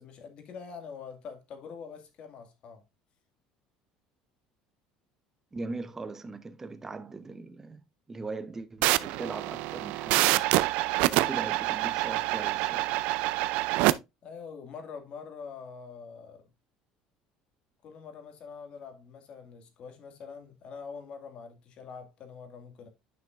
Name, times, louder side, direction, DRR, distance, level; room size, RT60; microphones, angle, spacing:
voice 1, 0.0-2.8 14.2-16.5 17.8-22.9, left 5 dB, 50° left, 2.1 m, -44 dB
voice 2, 5.5-10.4 11.1-12.9, right 3 dB, 15° right, 0.8 m, -40 dB
sound 1, 8.8-13.9, right 18 dB, 75° right, 0.4 m, -26 dB
9.6 x 5.8 x 2.5 m
supercardioid pair, 110°, 2 cm